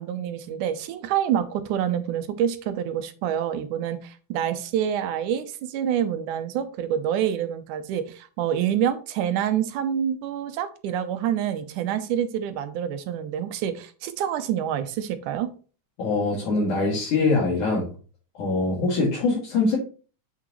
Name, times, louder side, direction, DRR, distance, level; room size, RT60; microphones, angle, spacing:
voice 1, 0.0-15.5, right 9 dB, 80° right, 10 dB, 2.2 m, -27 dB
voice 2, 16.0-17.9 18.4-19.8, left 3 dB, 75° left, -6 dB, 3.7 m, -23 dB
8.2 x 6.1 x 3.1 m, 0.37 s
omnidirectional pair, 3.6 m